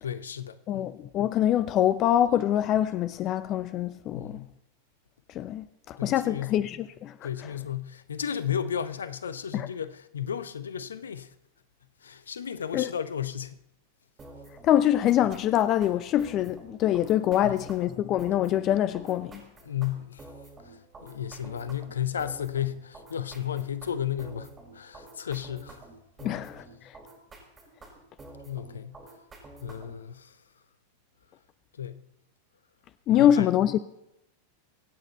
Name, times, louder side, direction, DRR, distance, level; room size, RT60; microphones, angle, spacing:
voice 1, 0.0-0.9 4.1-4.5 6.0-6.6 7.2-11.3 12.0-13.6 17.4-17.7 19.6-20.3 20.6-25.8 26.2-26.4 28.4-29.0 29.6-30.4 31.8-32.0 33.1-33.5, left 9 dB, 70° left, 0.8 m, -34 dB
voice 2, 0.7-4.4 5.3-7.1 9.5-9.7 12.7-12.9 14.6-19.4 26.2-26.6 33.1-33.8, left 11 dB, 35° left, 0.6 m, -24 dB
sound 1, 14.2-30.0, right 2 dB, 20° right, 6.4 m, -49 dB
25.0 x 9.0 x 4.4 m
figure-of-eight pair, 90°, 0 cm